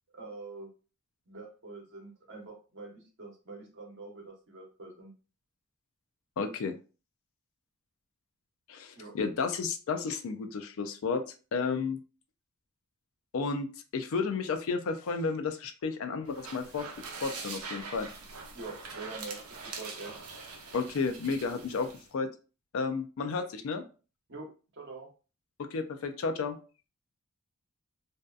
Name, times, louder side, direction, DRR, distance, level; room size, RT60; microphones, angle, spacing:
voice 1, 0.1-0.7 1.3-5.1 9.0-9.1 18.5-20.1 24.3-25.1, right 3 dB, 55° right, 0 dB, 0.9 m, -45 dB
voice 2, 6.4-6.7 8.7-11.2 11.5-12.0 13.3-13.7 13.9-16.9 17.2-18.1 20.7-22.3 22.7-23.8 25.6-26.6, left 4 dB, 65° left, 7 dB, 0.4 m, -32 dB
sound 1, 16.3-22.0, right 4 dB, 85° right, 0.6 m, -43 dB
2.6 x 2.2 x 2.3 m, 0.35 s
head